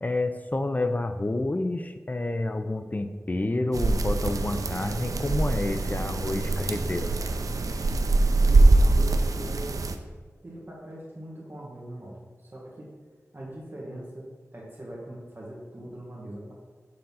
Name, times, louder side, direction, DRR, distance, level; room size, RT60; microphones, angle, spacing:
voice 1, 0.0-7.1, left 2 dB, 30° left, 8 dB, 0.4 m, -29 dB
sound 1, 3.7-9.9, right 2 dB, 90° right, 0.5 m, -23 dB
voice 2, 8.5-9.8 10.4-12.9 13.3-14.3 14.5-16.5, right 1 dB, 40° right, -4 dB, 1.8 m, -41 dB
6.8 x 3.8 x 5.5 m, 1.5 s
wide cardioid pair, 75°, 6 cm